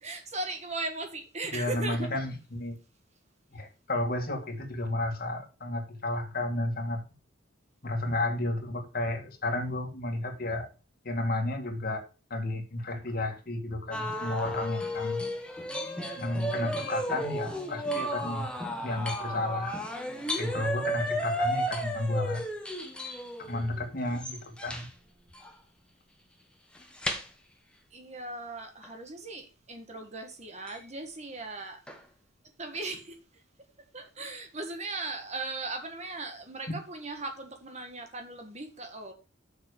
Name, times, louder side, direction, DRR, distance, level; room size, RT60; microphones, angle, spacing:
voice 1, 0.0-2.1 27.9-31.8 32.6-33.2 33.9-39.1, right 2 dB, 35° right, 1.7 m, -38 dB
voice 2, 1.5-2.8 3.5-7.0 7.8-10.7 11.0-12.0 12.3-15.2 16.2-18.5 18.8-19.8 20.4-22.4 23.4-24.9, left 2 dB, 50° left, 2.2 m, -32 dB
sound 1, 13.9-24.9 25.3-25.5 26.7-27.3 28.8-28.9 30.7-30.8 31.9-32.0 32.7-32.8, equal, 5° left, 1.4 m, -33 dB
7.3 x 6.5 x 6.6 m
head